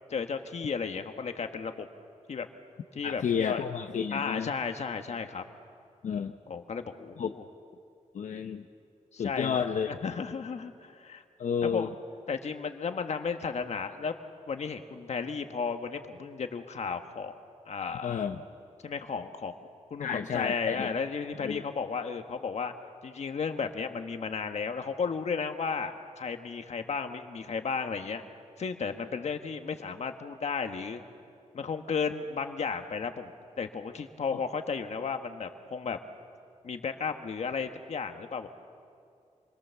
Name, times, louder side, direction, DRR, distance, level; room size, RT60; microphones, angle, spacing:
voice 1, 0.1-1.9 2.3-2.5 2.9-3.6 4.1-5.4 6.5-7.4 9.1-11.2 11.6-11.9 12.3-14.1 14.5-17.3 17.6-18.2 18.8-19.5 19.9-22.7 23.0-28.2 28.6-31.0 31.5-33.3 33.6-36.0 36.6-38.5, left 5 dB, 60° left, 6 dB, 1.5 m, -34 dB
voice 2, 3.0-4.5 6.0-6.3 7.2-7.3 8.1-8.6 9.2-9.9 11.4-11.9 18.0-18.4 20.0-20.9 21.4-21.6 34.3-34.4, left 7 dB, 85° left, 5 dB, 0.8 m, -31 dB
27.5 x 22.0 x 7.1 m, 2.4 s
wide cardioid pair, 140°, 13 cm